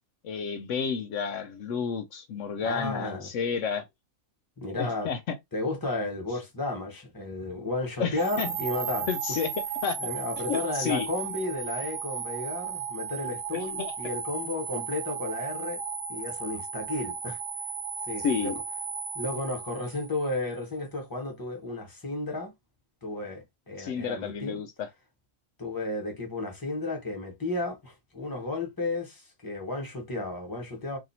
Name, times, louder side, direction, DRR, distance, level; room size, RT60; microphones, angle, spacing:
voice 1, 0.2-3.9 4.8-5.4 8.0-8.5 9.1-9.5 9.8-10.0 10.5-11.1 13.5-13.9 18.2-18.6 23.8-24.9, left 6 dB, 75° left, 0.9 m, -31 dB
voice 2, 2.6-3.3 4.6-5.1 5.5-9.4 10.0-15.8 16.1-17.4 18.0-18.5 19.1-22.5 23.0-24.6 25.6-31.0, left 2 dB, 15° left, 1.1 m, -33 dB
sound 1, 8.2-20.4, right 7 dB, 45° right, 0.8 m, -35 dB
2.7 x 2.6 x 4.2 m
omnidirectional pair, 1.4 m